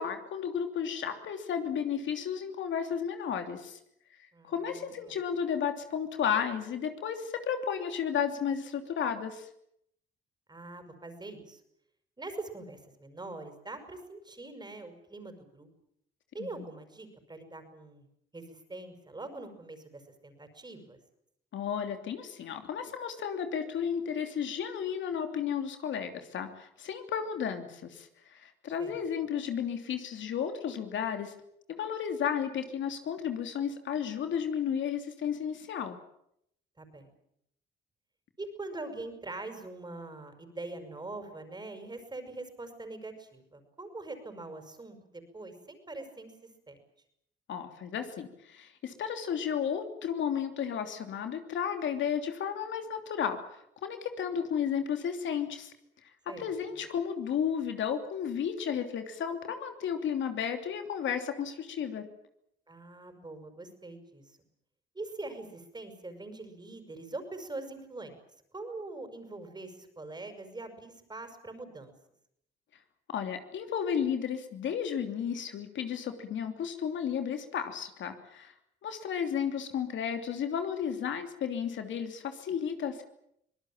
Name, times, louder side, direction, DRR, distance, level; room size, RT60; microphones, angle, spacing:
voice 1, 0.0-3.8 4.4-9.5 16.4-16.7 21.5-31.3 31.7-36.0 47.5-55.7 56.4-62.1 73.1-78.5 78.8-83.0, left 8 dB, 70° left, 6 dB, 3.0 m, -33 dB
voice 2, 4.3-5.2 10.5-11.6 12.2-15.7 16.3-18.0 18.3-21.0 28.8-29.0 36.8-37.1 38.4-46.3 46.7-46.8 56.3-56.5 62.7-64.4 64.9-68.2 68.5-71.9, right 2 dB, 20° right, 7 dB, 5.8 m, -43 dB
24.5 x 19.0 x 8.9 m, 0.75 s
cardioid pair, 90°, 20 cm